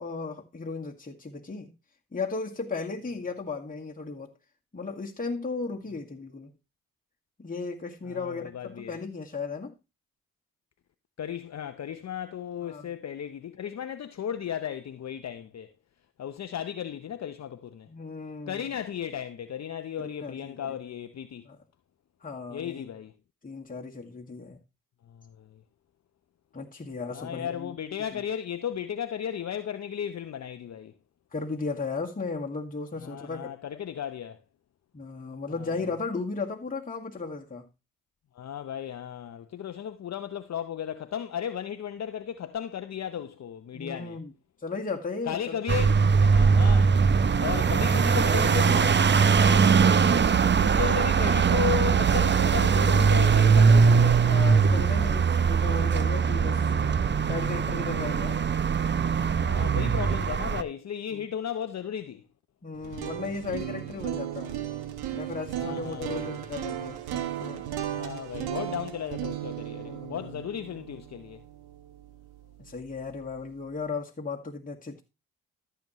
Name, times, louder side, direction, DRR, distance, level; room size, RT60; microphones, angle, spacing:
voice 1, 0.0-1.7 2.1-4.3 4.7-6.5 7.4-9.8 12.6-12.9 17.9-18.7 20.0-20.8 21.5-21.6 22.2-22.9 23.4-24.6 26.5-27.7 28.1-28.2 31.3-33.5 34.9-37.7 43.7-44.3 44.6-45.6 49.4-49.7 54.2-56.6 57.3-58.5 61.1-61.3 62.6-64.6 65.1-67.7 69.8-70.4 72.6-75.0, left 4 dB, 20° left, 1.8 m, -35 dB
voice 2, 8.0-9.0 11.2-15.7 16.2-17.9 18.5-21.5 22.5-23.1 25.1-25.6 27.1-30.9 33.0-34.4 35.6-35.7 38.3-44.2 45.3-47.0 47.4-49.0 50.6-54.2 56.5-56.7 59.3-62.2 65.5-66.6 67.9-71.4, left 9 dB, 45° left, 0.8 m, -35 dB
sound 1, 45.7-60.6, right 6 dB, 30° right, 0.7 m, -21 dB
sound 2, 62.7-72.8, right 12 dB, 80° right, 1.4 m, -36 dB
14.0 x 7.0 x 3.1 m
hypercardioid pair, 50°, 38 cm